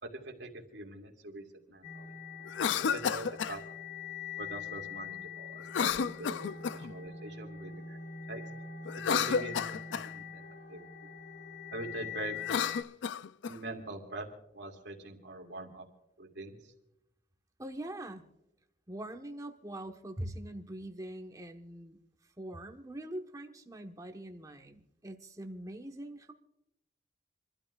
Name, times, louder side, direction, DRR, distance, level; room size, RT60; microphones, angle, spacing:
voice 1, 0.0-2.1 2.7-3.6 4.4-8.0 8.3-8.4 8.9-10.4 10.7-11.1 11.7-12.4 13.5-14.3 14.5-15.9 16.2-16.6, right 2 dB, 70° right, 1 dB, 2.4 m, -43 dB
sound 1, 1.8-12.8, left 6 dB, 40° left, 0.9 m, -43 dB
Cough, 2.5-3.6 5.7-6.9 8.8-10.1 12.3-13.6, left 7 dB, 80° left, 0.4 m, -31 dB
voice 2, 17.6-18.2 18.9-26.3, right 1 dB, 20° right, 4 dB, 1.2 m, -43 dB
28.0 x 12.5 x 2.4 m, 0.86 s
head